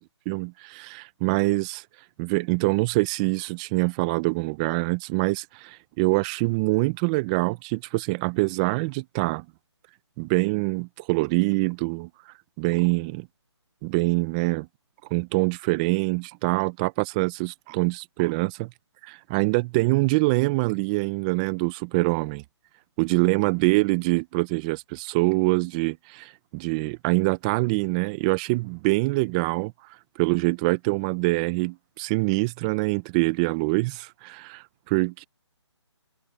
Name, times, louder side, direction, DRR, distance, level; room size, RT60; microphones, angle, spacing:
voice 1, 0.3-1.8 2.2-9.4 10.2-12.1 12.6-13.3 13.8-14.7 15.1-18.7 19.0-22.4 23.0-29.7 30.2-35.3, right 24 dB, 15° right, 0.6 m, -25 dB
hypercardioid pair, 160°, 15 cm